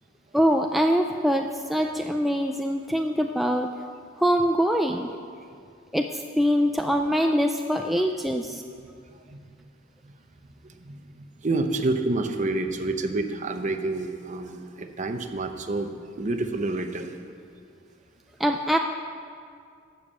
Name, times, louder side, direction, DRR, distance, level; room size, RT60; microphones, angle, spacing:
voice 1, 0.3-3.7 4.2-5.1 5.9-8.6 18.4-18.8, equal, ahead, 3 dB, 0.3 m, -23 dB
voice 2, 8.8-9.4 10.0-10.1 10.8-17.2, right 2 dB, 40° right, 6 dB, 0.8 m, -29 dB
12.0 x 7.2 x 7.5 m, 2.3 s
head